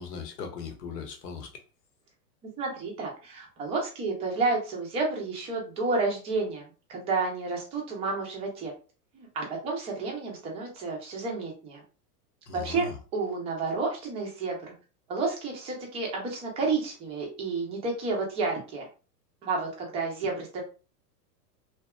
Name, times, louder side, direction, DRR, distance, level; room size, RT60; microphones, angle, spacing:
voice 1, 0.0-1.6 12.5-13.0, left 5 dB, 80° left, 0.9 m, -38 dB
voice 2, 2.6-8.7 9.1-11.8 12.5-12.9 13.1-14.7 15.1-18.9 19.4-20.6, right 3 dB, 15° right, 0.3 m, -30 dB
2.8 x 2.2 x 2.2 m
hypercardioid pair, 115°, 48 cm